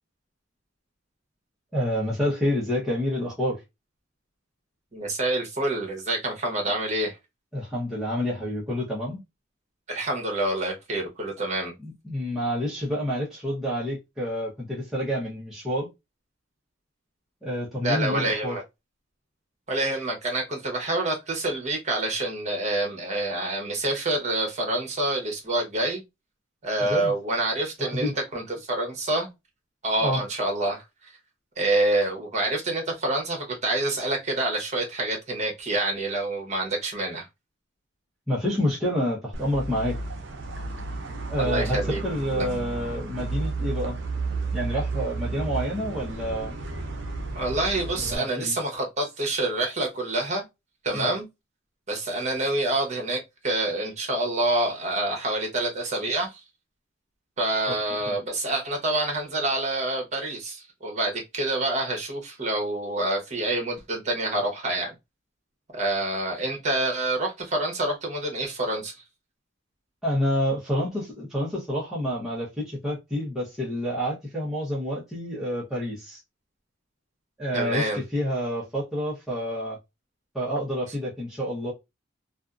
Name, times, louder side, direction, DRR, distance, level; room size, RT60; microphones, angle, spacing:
voice 1, 1.7-3.6 7.5-9.2 11.8-15.9 17.4-18.6 26.8-27.1 27.8-28.1 30.0-30.2 38.3-40.0 41.3-44.0 44.5-46.5 48.0-48.5 50.9-51.1 57.7-57.8 58.1-58.2 70.0-76.2 77.4-79.8 80.3-81.7, equal, ahead, 0.9 m, -28 dB
voice 2, 4.9-7.2 9.9-11.7 17.8-18.6 19.7-26.0 26.6-29.3 29.8-31.1 31.6-37.3 41.4-42.0 42.4-42.5 47.3-50.4 50.8-51.3 51.9-56.4 57.4-64.9 65.7-68.9 77.5-78.0, right 2 dB, 35° right, 1.0 m, -27 dB
sound 1, 39.3-48.2, right 3 dB, 60° right, 0.5 m, -32 dB
2.6 x 2.5 x 2.3 m
head